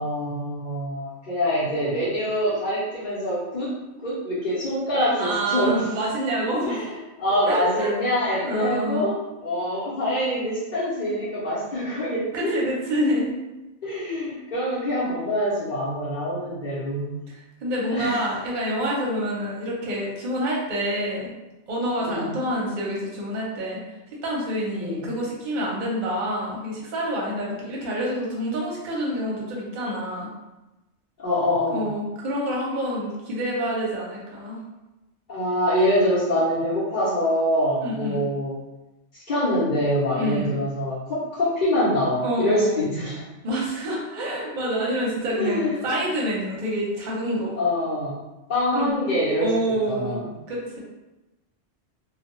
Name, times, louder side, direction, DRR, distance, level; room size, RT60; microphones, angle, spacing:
voice 1, 0.0-3.7 4.0-5.9 6.6-12.5 13.8-17.1 17.9-18.2 22.0-22.3 24.8-25.0 31.2-31.8 35.3-38.5 39.1-43.2 45.4-45.8 47.6-48.2 48.5-49.5 49.9-50.3, equal, 50° left, -11 dB, 0.8 m, -25 dB
voice 2, 5.2-6.8 7.5-7.9 8.4-9.1 12.3-13.3 17.3-21.3 21.7-23.8 24.2-30.3 31.7-34.6 37.8-38.2 40.1-40.6 42.2-42.9 43.4-47.6 48.7-48.9 49.4-50.2 50.5-50.8, equal, 50° right, -4 dB, 0.7 m, -27 dB
2.2 x 2.0 x 2.9 m, 1.0 s
omnidirectional pair, 1.2 m